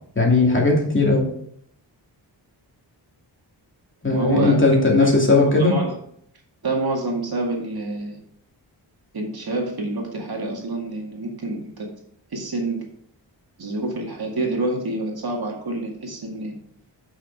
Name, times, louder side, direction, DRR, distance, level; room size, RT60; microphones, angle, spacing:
voice 1, 0.2-1.3 4.0-5.7, left 3 dB, 25° left, -1 dB, 2.6 m, -17 dB
voice 2, 4.1-4.6 5.0-6.0 6.6-8.2 9.1-11.9 12.3-12.8 13.6-16.6, right 2 dB, 55° right, 0 dB, 2.2 m, -27 dB
8.2 x 6.1 x 4.6 m, 0.67 s
wide cardioid pair, 105°, 44 cm